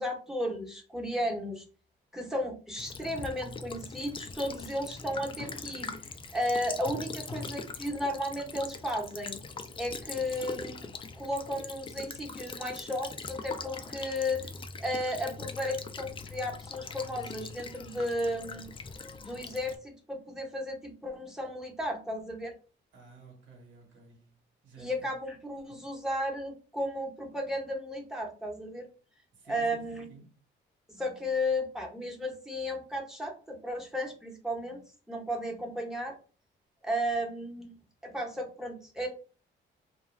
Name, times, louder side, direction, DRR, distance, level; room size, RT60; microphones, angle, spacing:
voice 1, 0.0-1.6 2.1-5.9 6.3-9.4 9.8-10.9 11.2-14.5 14.8-18.7 19.2-22.5 24.8-28.9 29.5-30.1 30.9-34.8 35.1-36.1 36.8-37.8 38.0-39.1, equal, 5° right, 1.0 m, -34 dB
Child speech kid speaking / Bird vocalization bird call bird song / Stream, 2.8-19.8, left 4 dB, 25° left, 0.4 m, -42 dB
voice 2, 22.9-24.4 24.6-25.1 25.6-25.8 29.3-30.4, right 4 dB, 70° right, 1.3 m, -53 dB
2.3 x 2.2 x 3.2 m
cardioid pair, 90°, 20 cm